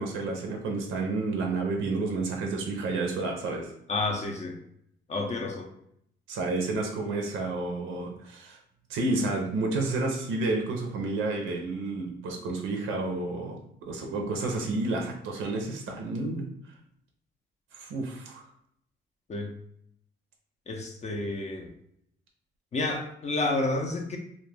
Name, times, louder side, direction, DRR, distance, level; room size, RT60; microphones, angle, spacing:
voice 1, 0.0-3.7 6.3-8.6 8.9-16.5 17.7-18.4, right 3 dB, 85° right, 2 dB, 0.5 m, -30 dB
voice 2, 3.9-4.6 5.1-5.7 19.3-19.5 20.7-21.7 22.7-24.2, left 2 dB, 35° left, 2 dB, 0.4 m, -30 dB
2.2 x 2.1 x 3.1 m, 0.72 s
cardioid pair, 90°, 20 cm